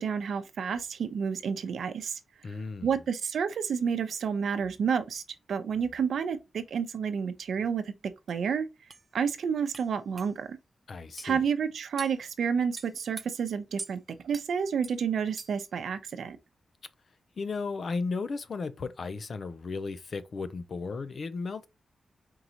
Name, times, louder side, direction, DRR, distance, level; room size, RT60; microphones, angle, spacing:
voice 1, 0.0-2.2 2.8-5.2 5.5-7.9 8.3-8.7 9.1-10.6 11.2-16.4, right 6 dB, 90° right, 0.7 m, -30 dB
voice 2, 2.4-2.9 10.9-11.4 17.4-21.7, left 4 dB, 55° left, 0.5 m, -35 dB
sound 1, 8.3-8.4 8.9-9.0 9.7-9.9 10.2-10.3 11.2-11.3 12.0-12.2 12.8-13.3 13.8-13.9 14.3-14.5 14.8-15.0 15.4-15.7, right 3 dB, 30° right, 0.3 m, -42 dB
4.6 x 3.9 x 2.9 m
wide cardioid pair, 135°, 0 cm